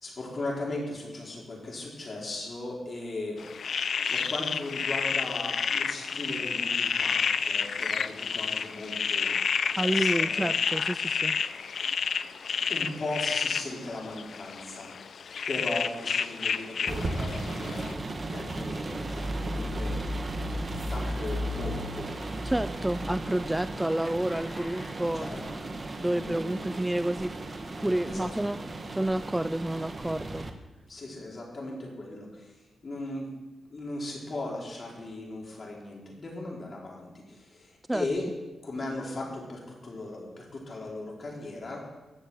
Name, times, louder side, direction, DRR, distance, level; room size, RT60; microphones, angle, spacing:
voice 1, 0.0-3.4 4.1-9.4 9.7-10.5 12.7-15.1 15.5-18.0 18.3-20.0 20.8-22.1 25.1-25.4 26.1-26.7 28.1-28.6 30.9-32.6 32.8-33.3 33.7-38.3 38.6-41.8, left 2 dB, 45° left, -2 dB, 4.6 m, -37 dB
sound 1, 3.4-17.9, left 6 dB, 60° left, 0.5 m, -30 dB
voice 2, 9.8-11.4 22.5-25.3 26.0-27.4 27.8-28.6 28.9-30.5 37.9-38.1, right 1 dB, 10° right, 13 dB, 0.4 m, -29 dB
sound 2, 16.9-30.5, right 1 dB, 35° right, 1.5 m, -35 dB
sound 3, 19.2-28.7, left 1 dB, 25° left, 2.9 m, -51 dB
14.0 x 6.9 x 9.1 m, 1.1 s
cardioid pair, 100°, 0 cm